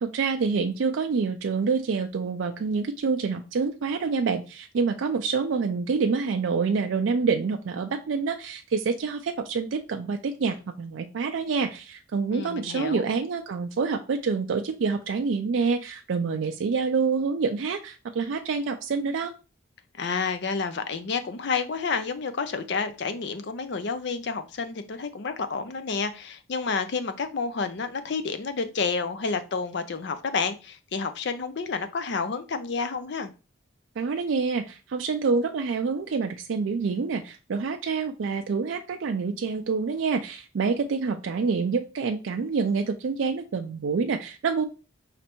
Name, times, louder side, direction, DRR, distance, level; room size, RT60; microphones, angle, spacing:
voice 1, 0.0-19.3 34.0-44.6, right 5 dB, 65° right, 5 dB, 0.4 m, -27 dB
voice 2, 12.3-13.1 19.9-33.3, left 5 dB, 55° left, 10 dB, 0.5 m, -30 dB
5.0 x 3.3 x 3.0 m, 0.33 s
head